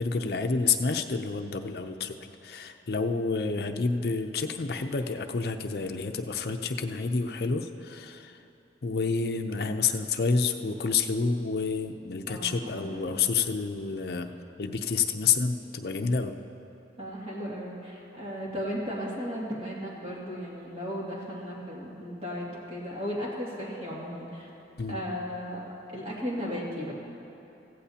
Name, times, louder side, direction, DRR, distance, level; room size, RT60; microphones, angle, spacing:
voice 1, 0.0-2.2 2.4-8.4 8.8-14.3 14.6-16.4 24.8-25.0, left 4 dB, 60° left, 6 dB, 0.6 m, -29 dB
voice 2, 12.3-13.2 17.0-24.5 24.9-25.6 25.9-26.9, equal, 35° right, -5 dB, 2.3 m, -36 dB
15.5 x 15.0 x 2.9 m, 2.9 s
head